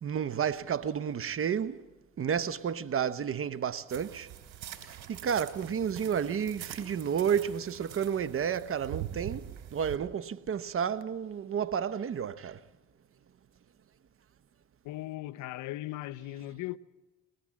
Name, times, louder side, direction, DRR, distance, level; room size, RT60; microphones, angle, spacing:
voice 1, 0.0-1.8 2.2-4.3 4.8-12.6, right 8 dB, 45° right, 0.9 m, -31 dB
sound 1, 3.9-10.0, right 11 dB, 75° right, 3.1 m, -44 dB
voice 2, 14.8-16.8, left 16 dB, 75° left, 0.7 m, -38 dB
21.5 x 19.5 x 7.4 m
supercardioid pair, 70°, 30 cm